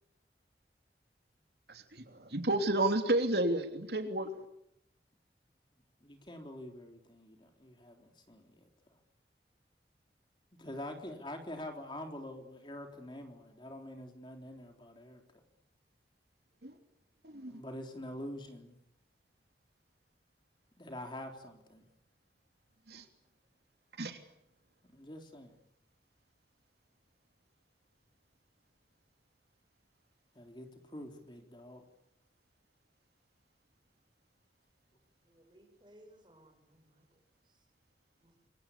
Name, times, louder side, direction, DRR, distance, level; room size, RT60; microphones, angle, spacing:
voice 1, 1.7-4.4 16.6-16.8 17.2-17.5 22.9-23.0 24.0-24.2, right 1 dB, 70° right, 5 dB, 3.2 m, -32 dB
voice 2, 6.0-8.7 10.6-15.2 17.5-18.8 20.8-21.8 24.9-25.5 30.4-30.7 30.9-31.8, left 1 dB, 25° left, 4 dB, 3.7 m, -45 dB
voice 3, 35.2-37.2 38.2-38.3, right 1 dB, 25° right, 3 dB, 7.8 m, -61 dB
28.0 x 24.0 x 8.5 m, 0.76 s
head